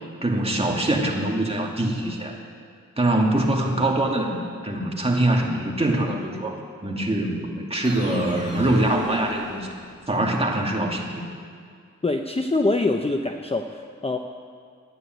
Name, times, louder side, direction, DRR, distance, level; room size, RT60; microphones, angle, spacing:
voice 1, 0.2-2.4 3.0-9.7 10.1-11.2, right 1 dB, 20° right, -1 dB, 2.4 m, -24 dB
sound 1, 7.8-10.2, left 1 dB, 55° left, 2.7 m, -35 dB
voice 2, 12.0-14.2, left 2 dB, 20° left, 4 dB, 0.8 m, -24 dB
12.5 x 10.0 x 9.3 m, 2.1 s
wide cardioid pair, 85°, 30 cm